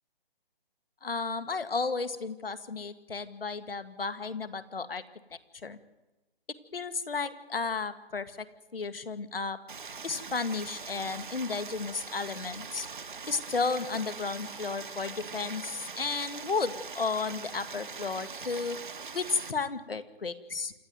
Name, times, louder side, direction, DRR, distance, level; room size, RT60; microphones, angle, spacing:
voice 1, 1.0-5.0 5.3-5.8 6.7-8.5 8.7-9.6 10.0-12.9 13.3-18.8 19.1-20.7, left 4 dB, 70° left, 12 dB, 1.9 m, -33 dB
Stream, 9.7-19.5, right 5 dB, 55° right, 1.4 m, -42 dB
27.5 x 12.0 x 9.4 m, 1.1 s
figure-of-eight pair, 170°, 30 cm